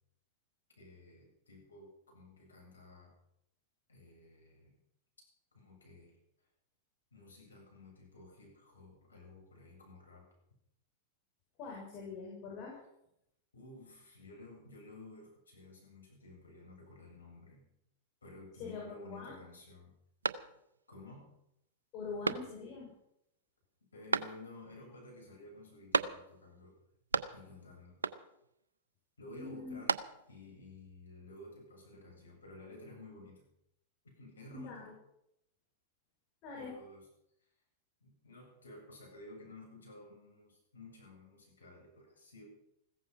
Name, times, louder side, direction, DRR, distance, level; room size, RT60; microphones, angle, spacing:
voice 1, 0.8-3.1 3.9-4.7 5.5-6.2 7.1-10.3 13.5-17.7 18.2-19.9 20.9-21.3 23.9-26.7 27.3-28.0 29.2-30.0 30.3-33.5 34.1-34.9 36.5-37.1 38.0-42.4, left 2 dB, 90° left, 0 dB, 7.9 m, -53 dB
voice 2, 11.6-12.8 18.6-19.3 21.9-22.9 29.3-29.8 34.5-34.9 36.4-36.7, left 4 dB, 45° left, -3 dB, 6.5 m, -44 dB
sound 1, 20.2-20.9 21.3-21.4 22.2-22.9 24.1-24.7 25.9-26.5 26.8-27.6 28.0-28.5 29.5-30.5, right 4 dB, 90° right, 0.8 m, -35 dB
16.0 x 14.5 x 5.8 m, 0.79 s
hypercardioid pair, 105°, 0 cm